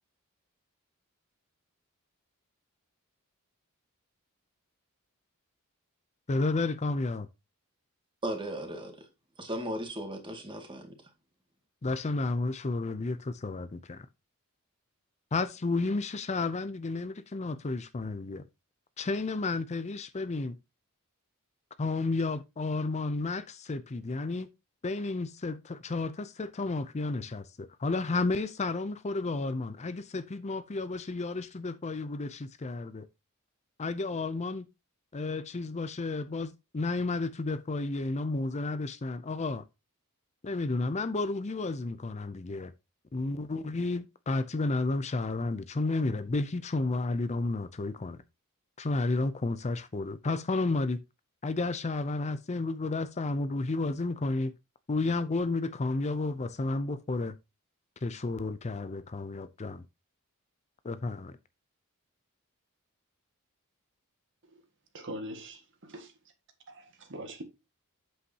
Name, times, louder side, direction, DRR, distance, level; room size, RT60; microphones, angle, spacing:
voice 1, 6.3-7.3 11.8-14.1 15.3-18.4 19.0-20.6 21.8-24.5 24.8-33.1 33.8-34.7 35.1-39.7 40.4-42.7 43.1-48.2 48.8-51.0 51.4-54.5 54.9-57.4 58.0-59.8 60.8-61.4, left 3 dB, 30° left, 0.5 m, -32 dB
voice 2, 8.2-9.1 9.4-11.0, right 1 dB, 20° right, 2.1 m, -36 dB
voice 3, 64.9-65.6 65.9-66.1 66.7-67.4, right 1 dB, 55° right, 1.7 m, -41 dB
8.3 x 7.8 x 2.8 m
head